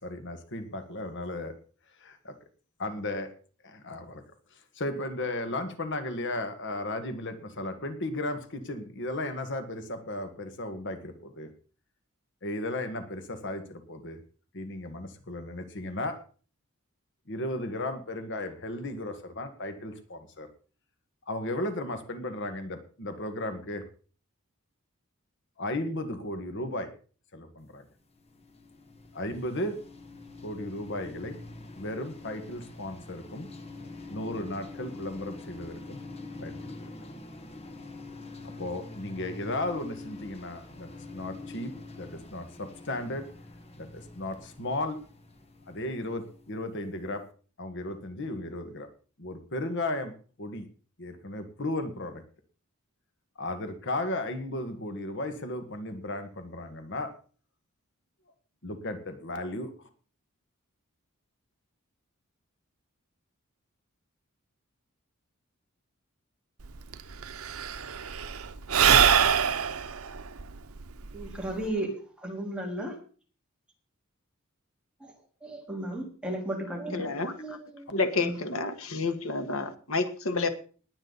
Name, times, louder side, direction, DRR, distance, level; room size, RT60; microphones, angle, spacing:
voice 1, 0.0-1.5 2.0-2.4 2.8-3.3 3.6-4.2 4.5-11.5 12.4-14.2 14.5-16.2 17.3-20.5 21.3-23.8 25.6-26.9 27.3-27.8 29.1-29.8 30.4-31.4 31.7-33.5 34.1-36.0 36.4-36.9 38.6-43.3 43.8-45.0 45.7-47.2 47.6-48.9 49.2-50.7 51.0-52.2 53.4-57.1 58.6-59.7, left 1 dB, 60° left, 1.8 m, -35 dB
sound 1, 27.9-46.9, left 3 dB, 30° left, 1.7 m, -45 dB
Sigh / Breathing, 66.6-66.7 66.9-71.7, right 8 dB, 85° right, 0.8 m, -24 dB
voice 2, 71.1-71.9 72.2-72.9 75.0-75.1 75.4-77.1 77.4-77.9 78.2-78.3, right 1 dB, 5° right, 3.9 m, -34 dB
voice 3, 76.9-77.6 77.9-80.5, left 3 dB, 75° left, 1.8 m, -30 dB
20.0 x 8.9 x 4.1 m
head